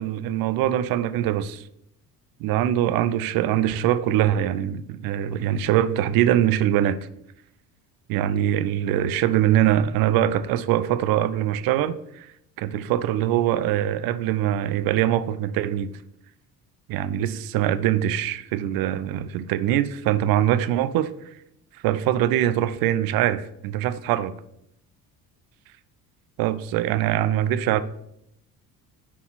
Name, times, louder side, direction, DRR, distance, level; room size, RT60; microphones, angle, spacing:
voice 1, 0.0-1.6 2.4-7.0 8.1-12.3 12.6-15.9 16.9-21.1 21.7-24.3 26.4-27.8, right 11 dB, 45° right, 14 dB, 0.5 m, -23 dB
10.0 x 4.2 x 4.1 m, 0.79 s
figure-of-eight pair, 55°, 50 cm